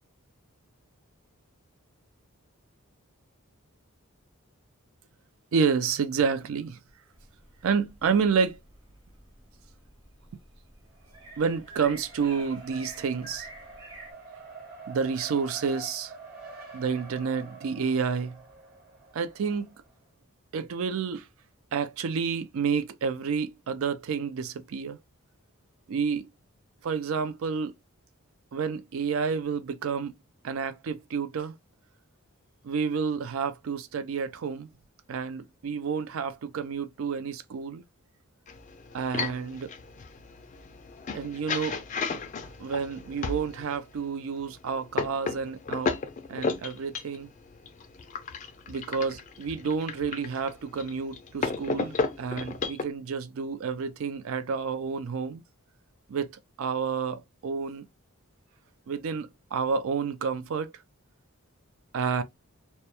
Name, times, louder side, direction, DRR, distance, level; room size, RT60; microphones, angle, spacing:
voice 1, 5.5-6.8 7.6-8.6 11.4-13.5 14.9-16.2 16.7-18.4 19.1-19.7 20.5-21.3 21.7-25.0 25.9-26.3 26.8-27.7 28.5-30.1 30.4-31.6 32.6-34.7 35.1-37.8 38.9-39.7 41.1-41.8 42.6-46.0 46.3-47.3 48.7-55.4 56.1-56.3 56.6-57.8 58.9-60.7 61.9-62.2, right 6 dB, 65° right, 0.4 m, -29 dB
sound 1, 7.1-14.1, right 2 dB, 20° right, 0.7 m, -50 dB
Race car auto racing, 10.9-20.0, right 3 dB, 40° right, 1.0 m, -47 dB
sound 2, 38.5-43.8 44.4-52.8, left 4 dB, 35° left, 0.3 m, -34 dB
2.1 x 2.1 x 2.8 m
head